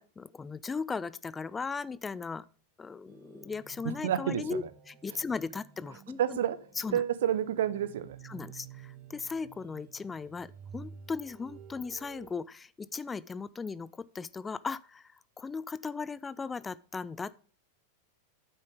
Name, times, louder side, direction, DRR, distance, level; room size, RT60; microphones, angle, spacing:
voice 1, 0.0-2.5 2.8-6.4 6.8-7.0 8.2-17.3, left 5 dB, 15° left, 0.3 m, -37 dB
sound 1, 3.1-12.3, right 7 dB, 45° right, 1.8 m, -52 dB
voice 2, 4.0-4.7 6.2-6.6 6.9-8.2, right 10 dB, 60° right, 0.7 m, -29 dB
9.4 x 8.0 x 3.5 m
figure-of-eight pair, 90°, 0 cm